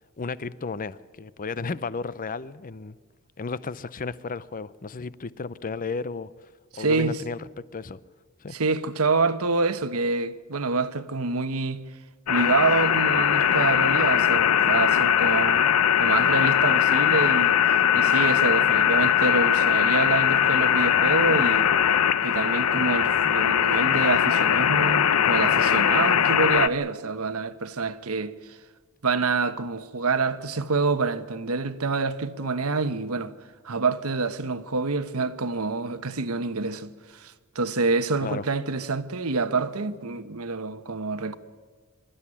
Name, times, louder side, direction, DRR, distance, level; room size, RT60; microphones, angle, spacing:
voice 1, 0.2-3.0 3.4-8.0 8.4-8.6 38.2-38.5, left 4 dB, 40° left, 0.6 m, -34 dB
voice 2, 6.7-7.2 8.5-11.8 12.3-15.6 16.0-21.7 22.2-28.6 29.0-33.3 33.6-41.4, right 3 dB, 75° right, 1.1 m, -27 dB
sound 1, 12.3-26.7, left 9 dB, 80° left, 0.7 m, -21 dB
25.5 x 12.5 x 9.9 m
head